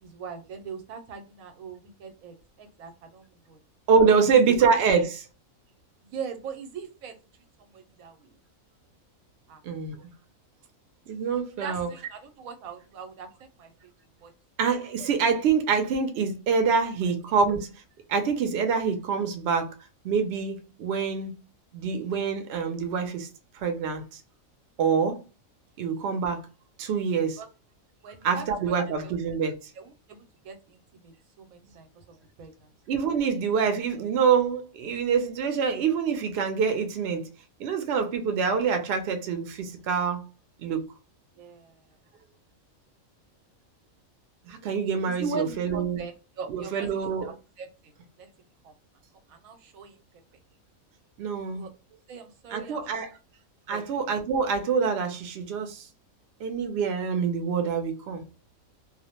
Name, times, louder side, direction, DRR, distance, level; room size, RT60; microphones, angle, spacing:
voice 1, 0.0-3.6 4.3-4.6 4.9-5.1 6.0-7.1 7.7-8.2 9.5-9.6 11.6-13.3 13.6-13.7 14.2-14.3 27.4-27.5 28.0-28.4 29.0-29.1 29.8-31.9 32.4-32.5 41.4-41.8 45.2-46.1 46.4-47.7 48.2-48.3 48.6-48.7 49.3-49.9 51.5-53.0 53.7-53.8, right 5 dB, 85° right, 1.0 m, -40 dB
voice 2, 3.9-5.2 9.6-10.0 11.1-11.9 14.6-17.7 18.1-19.7 20.0-21.3 21.7-23.3 23.5-24.2 24.8-25.2 25.8-26.4 26.8-27.4 28.2-29.6 32.9-37.3 37.6-40.2 40.6-40.9 44.5-46.0 46.5-47.3 51.2-51.6 52.5-53.2 53.7-55.9 56.4-58.2, right 6 dB, 60° right, 0.7 m, -25 dB
2.4 x 2.0 x 2.8 m
omnidirectional pair, 1.4 m